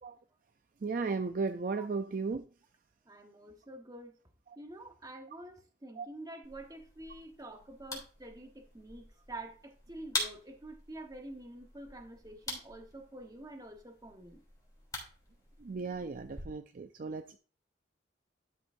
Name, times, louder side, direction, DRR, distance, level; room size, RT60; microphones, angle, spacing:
voice 1, 0.8-2.4 6.0-6.1 15.6-17.4, right 4 dB, 45° right, 0.4 m, -35 dB
voice 2, 3.1-4.1 4.6-14.4, right 1 dB, 20° right, 1.2 m, -47 dB
sound 1, 6.4-16.4, left 2 dB, 20° left, 3.3 m, -44 dB
12.5 x 6.0 x 2.6 m
head